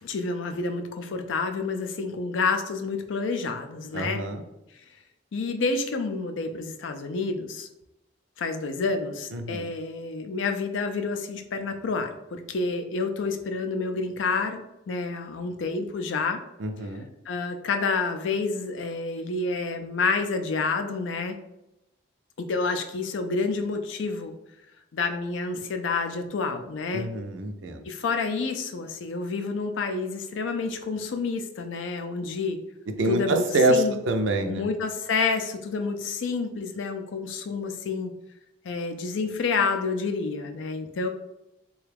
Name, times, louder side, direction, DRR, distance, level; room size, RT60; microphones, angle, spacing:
voice 1, 0.0-4.2 5.3-7.7 8.4-16.4 17.3-21.4 22.4-24.3 24.9-27.1 27.8-32.6 33.1-33.4 33.7-34.0 34.4-38.1 38.6-41.1, left 4 dB, 80° left, 6 dB, 0.4 m, -29 dB
voice 2, 3.9-4.4 9.3-9.7 16.6-17.1 26.9-27.8 33.0-34.7, right 1 dB, 80° right, 6 dB, 0.4 m, -26 dB
3.3 x 2.3 x 3.3 m, 0.89 s
head